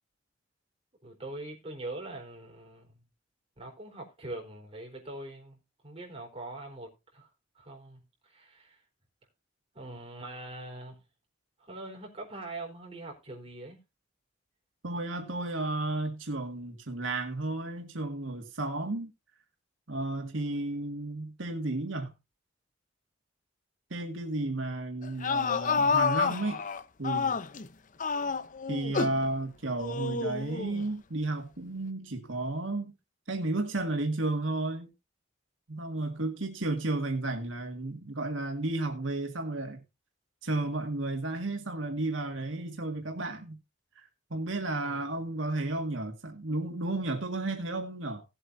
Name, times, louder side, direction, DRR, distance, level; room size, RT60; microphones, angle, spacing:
voice 1, 1.0-3.0 3.6-5.6 5.8-7.3 7.5-8.8 9.7-11.0 11.6-13.8 44.8-45.1, right 2 dB, 30° right, 4.2 m, -43 dB
voice 2, 14.8-19.1 19.9-22.1 23.9-26.6 27.0-27.4 28.7-32.9 33.3-34.9 35.7-39.8 40.4-43.6 44.3-48.2, right 2 dB, 85° right, 1.9 m, -33 dB
sound 1, 25.0-27.7 28.0-29.2 29.8-30.8, left 5 dB, 45° left, 0.7 m, -29 dB
18.0 x 7.8 x 2.7 m
head